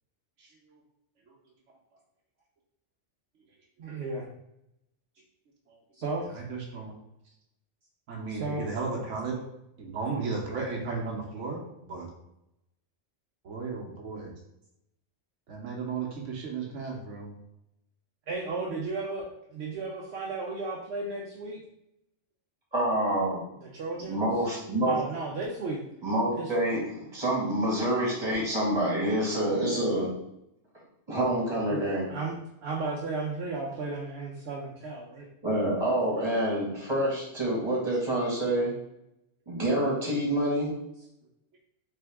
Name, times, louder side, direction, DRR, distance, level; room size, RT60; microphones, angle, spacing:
voice 1, 3.8-4.2 6.0-6.3 8.3-8.7 18.3-21.6 23.6-24.2 24.8-25.8 26.4-26.5 31.7-31.8 32.1-32.4 32.6-35.3, right 3 dB, 65° right, -2 dB, 0.9 m, -34 dB
voice 2, 6.3-6.9 8.1-9.4 9.8-12.1 13.4-14.3 15.5-17.3, right 4 dB, 90° right, -1 dB, 1.2 m, -34 dB
voice 3, 22.7-23.4 24.1-24.9 26.0-30.1 31.1-32.1 35.4-38.7 39.5-40.7, right 1 dB, 25° right, -5 dB, 1.6 m, -27 dB
3.7 x 3.4 x 3.5 m, 0.82 s
omnidirectional pair, 1.2 m